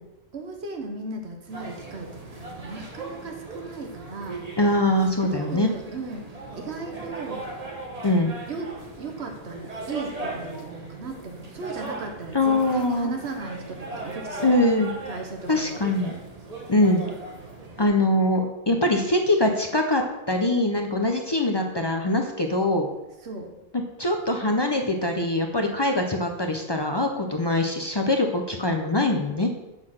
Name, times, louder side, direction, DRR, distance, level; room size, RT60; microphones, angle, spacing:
voice 1, 0.3-4.5 5.3-7.5 8.5-14.5 15.1-15.8 23.2-23.5, right 3 dB, 70° right, 3 dB, 1.3 m, -36 dB
sound 1, 1.5-17.9, right 2 dB, 35° right, 1.1 m, -38 dB
voice 2, 4.6-5.7 8.0-8.3 12.3-13.1 14.4-14.9 15.5-16.1 16.7-17.0 17.8-22.9 23.7-29.5, left 1 dB, 35° left, 3 dB, 0.4 m, -23 dB
6.3 x 3.8 x 6.3 m, 1.0 s
omnidirectional pair, 1.2 m